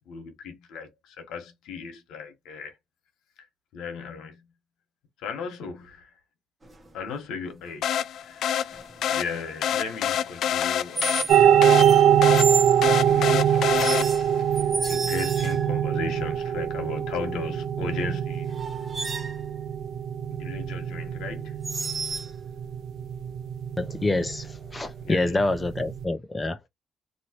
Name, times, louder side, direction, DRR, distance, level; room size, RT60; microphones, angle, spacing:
voice 1, 0.1-2.8 3.7-4.4 5.2-6.1 6.9-8.8 9.1-12.0 12.7-13.8 14.5-18.6 20.3-21.6 25.0-25.6, left 5 dB, 90° left, 1.2 m, -37 dB
sound 1, 6.6-7.0 8.7-9.1 11.0-11.5 11.8-12.8 13.8-15.8 18.0-18.1 18.5-19.4 21.6-22.3, right 4 dB, 30° right, 1.1 m, -31 dB
sound 2, 7.8-14.4, left 9 dB, 75° left, 0.3 m, -28 dB
sound 3, 11.3-26.0, right 9 dB, 75° right, 0.5 m, -23 dB
voice 2, 23.8-26.7, left 2 dB, 20° left, 0.6 m, -27 dB
3.1 x 2.7 x 2.9 m
cardioid pair, 90°, 0 cm